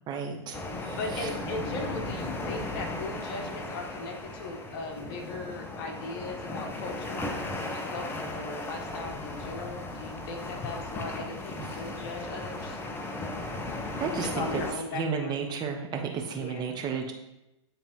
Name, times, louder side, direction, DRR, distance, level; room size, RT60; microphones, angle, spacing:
voice 1, 0.1-0.6 0.8-1.3 11.6-11.7 14.0-14.6 14.9-17.1, right 6 dB, 30° right, 3 dB, 0.8 m, -32 dB
sound 1, 0.5-14.7, left 2 dB, 15° left, 0.6 m, -36 dB
voice 2, 0.7-12.8 14.2-15.4 16.4-16.8, left 3 dB, 50° left, 3 dB, 1.2 m, -38 dB
9.7 x 3.3 x 3.0 m, 0.91 s
hypercardioid pair, 105°, 15 cm